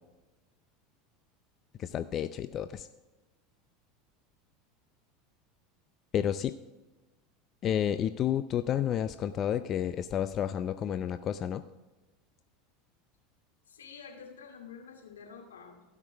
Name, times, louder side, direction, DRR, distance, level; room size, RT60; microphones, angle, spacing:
voice 1, 1.8-2.9 6.1-6.5 7.6-11.6, left 10 dB, 40° left, 11 dB, 0.5 m, -30 dB
voice 2, 13.7-15.8, left 6 dB, 90° left, 1 dB, 2.4 m, -48 dB
16.5 x 6.0 x 3.4 m, 1.1 s
hypercardioid pair, 90°, 0 cm